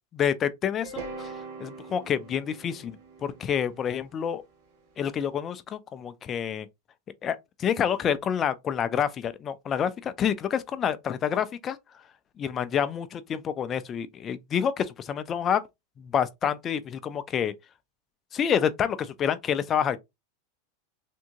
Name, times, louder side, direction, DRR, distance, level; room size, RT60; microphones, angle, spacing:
voice 1, 0.1-1.3 1.6-4.4 5.0-6.7 7.2-11.8 12.4-15.6 16.0-17.5 18.3-20.0, left 8 dB, 25° left, 0.4 m, -28 dB
sound 1, 0.8-5.0, right 4 dB, 60° right, 1.2 m, -42 dB
3.6 x 2.6 x 2.8 m
supercardioid pair, 150°, 0 cm